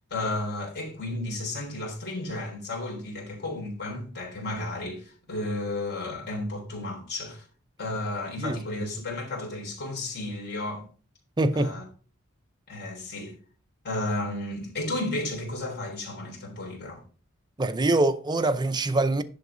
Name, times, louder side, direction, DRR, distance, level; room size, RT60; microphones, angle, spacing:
voice 1, 0.0-7.5 7.8-10.9 11.5-11.8 12.7-13.4 13.8-17.0, left 2 dB, 50° left, 3.5 m, -33 dB
voice 2, 11.4-11.8 17.6-19.2, right 2 dB, 20° right, 0.5 m, -24 dB
10.5 x 3.9 x 4.9 m
head